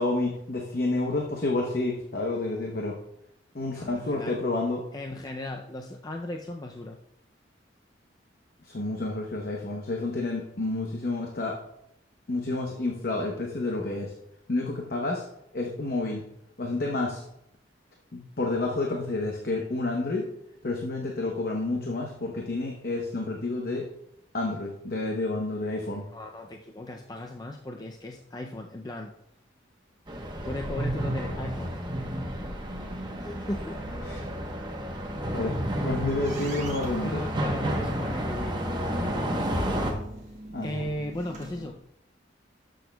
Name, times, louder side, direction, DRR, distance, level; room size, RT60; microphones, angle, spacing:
voice 1, 0.0-3.0 3.5-4.8 8.6-11.6 12.3-14.1 14.5-15.2 15.5-16.2 16.6-17.2 18.1-20.3 20.6-23.9 24.3-26.0 34.0-34.2 35.3-35.5 35.8-37.2 40.5-40.8, left 2 dB, 50° left, 0 dB, 0.8 m, -29 dB
voice 2, 3.7-4.4 4.9-7.0 25.8-29.1 30.4-31.7 33.2-33.8 37.0-40.0 40.6-41.8, left 1 dB, 20° left, 3 dB, 0.4 m, -37 dB
sound 1, 30.1-39.9, equal, 25° right, 0.9 m, -31 dB
sound 2, 35.2-41.7, right 1 dB, 40° right, 1.5 m, -44 dB
12.5 x 6.3 x 2.2 m, 0.80 s
head